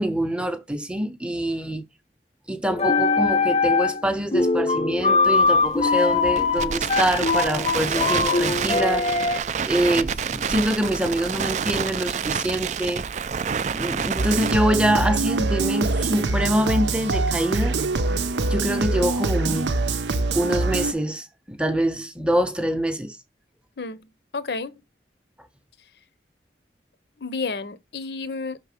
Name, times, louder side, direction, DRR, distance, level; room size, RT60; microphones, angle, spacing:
voice 1, 0.0-1.8 2.5-9.1 9.6-13.0 13.7-17.8 18.4-19.7 20.3-23.2, right 1 dB, 5° right, 0.6 m, -25 dB
sound 1, 2.7-4.1 4.3-9.4, left 4 dB, 35° left, 0.5 m, -22 dB
Crackle, 5.3-14.5, right 7 dB, 40° right, 0.3 m, -28 dB
sound 2, 14.2-20.9, right 3 dB, 85° right, 0.6 m, -24 dB
voice 2, 23.8-24.8 27.2-28.6, left 4 dB, 70° left, 0.7 m, -31 dB
5.7 x 3.7 x 5.0 m
head